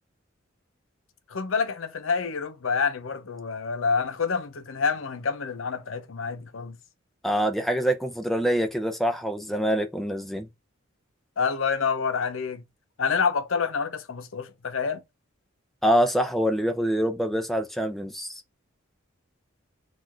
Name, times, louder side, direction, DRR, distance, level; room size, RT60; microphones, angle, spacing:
voice 1, 1.3-6.8 11.4-12.6 13.0-15.0, left 5 dB, 80° left, 0.8 m, -27 dB
voice 2, 7.2-10.5 15.8-18.4, equal, ahead, 0.6 m, -25 dB
4.3 x 2.5 x 4.4 m
head